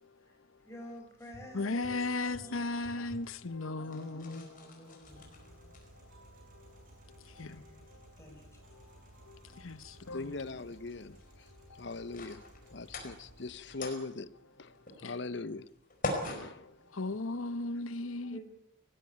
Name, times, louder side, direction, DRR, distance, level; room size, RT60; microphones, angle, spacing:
sound 1, 0.6-17.6, left 1 dB, 40° left, 4.9 m, -46 dB
voice 1, 0.6-3.0 3.8-5.8 7.5-7.8 8.2-8.5 18.3-18.4, equal, 15° left, 5.3 m, -51 dB
sound 2, 1.3-12.8, right 2 dB, 75° right, 7.4 m, -58 dB
voice 2, 1.5-8.1 8.7-9.0 9.3-10.3 11.4-12.1 12.4-12.8 13.1-13.2 14.7-15.1 16.3-18.4, left 2 dB, 85° left, 1.0 m, -39 dB
sound 3, 5.0-13.5, right 1 dB, 40° right, 5.9 m, -57 dB
voice 3, 10.1-11.2 11.8-12.4 12.7-14.3 14.6-14.7 15.0-15.7 16.3-16.7, left 3 dB, 55° left, 0.8 m, -40 dB
19.0 x 15.5 x 9.3 m
head